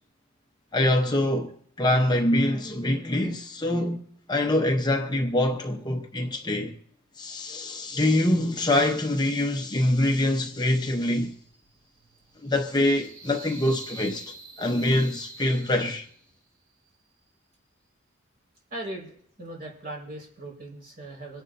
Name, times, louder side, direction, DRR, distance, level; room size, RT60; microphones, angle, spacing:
voice 1, 0.7-4.0 4.3-6.7 7.2-11.3 12.4-16.1, left 1 dB, 20° left, 0.8 m, -24 dB
sound 1, 10.8-16.4, right 3 dB, 90° right, 2.8 m, -47 dB
voice 2, 18.7-21.4, right 1 dB, 45° right, 4.6 m, -39 dB
26.0 x 10.5 x 2.6 m
head